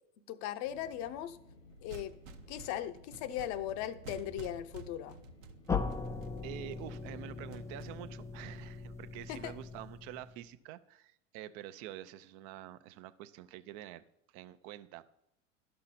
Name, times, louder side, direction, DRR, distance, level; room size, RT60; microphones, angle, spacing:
voice 1, 0.3-1.4 1.8-2.1 2.5-5.2 9.3-9.5, left 11 dB, 45° left, 12 dB, 0.7 m, -38 dB
sound 1, 0.6-6.1, left 3 dB, 80° left, 1.5 m, -58 dB
sound 2, 1.7-9.1, right 5 dB, 80° right, 0.9 m, -53 dB
sound 3, 5.7-10.5, left 5 dB, 10° left, 0.4 m, -39 dB
voice 2, 6.4-14.0 14.3-15.0, right 13 dB, 45° right, 13 dB, 0.6 m, -47 dB
11.5 x 5.6 x 4.2 m, 0.80 s
hypercardioid pair, 90°, 39 cm